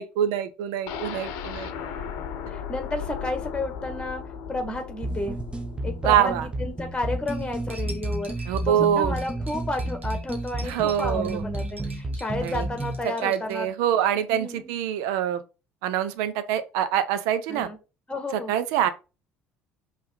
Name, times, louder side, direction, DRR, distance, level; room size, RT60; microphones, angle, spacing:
voice 1, 0.0-1.7 6.0-6.5 8.5-9.2 10.6-11.4 12.4-12.7 13.0-15.4 15.8-17.7 18.3-18.9, right 10 dB, 65° right, 0.7 m, -25 dB
sound 1, 0.9-8.7 9.1-9.2 9.5-9.6, left 7 dB, 60° left, 0.8 m, -37 dB
voice 2, 2.5-4.2 4.5-5.4 5.8-13.7 14.3-14.7 17.5-17.8 18.1-18.5, left 2 dB, 15° left, 1.8 m, -32 dB
sound 2, 5.0-13.0, right 1 dB, 15° right, 0.9 m, -31 dB
Cutlery silverware, 7.3-13.5, right 2 dB, 85° right, 1.2 m, -46 dB
5.4 x 3.3 x 5.2 m
figure-of-eight pair, 55°, 7 cm